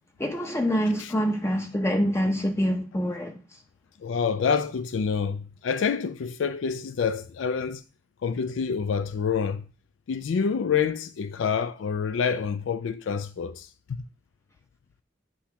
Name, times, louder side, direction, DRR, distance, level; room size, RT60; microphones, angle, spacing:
voice 1, 0.2-3.4, equal, 15° left, 0.6 m, -25 dB
voice 2, 4.0-7.8 8.2-9.7 10.1-13.7, left 6 dB, 85° left, 0.4 m, -27 dB
8.5 x 2.9 x 5.7 m
head